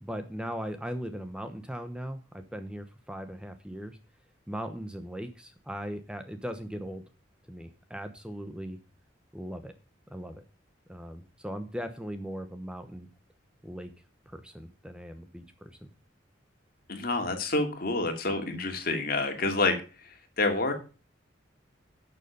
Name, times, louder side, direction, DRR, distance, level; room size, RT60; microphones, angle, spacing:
voice 1, 0.0-4.0 4.5-7.0 7.5-8.8 9.3-9.7 10.1-10.4 10.9-13.1 13.6-13.9 14.3-15.9, equal, 5° right, 8 dB, 0.9 m, -39 dB
voice 2, 16.9-20.7, left 2 dB, 50° left, 5 dB, 2.5 m, -28 dB
12.0 x 6.9 x 5.3 m, 0.34 s
head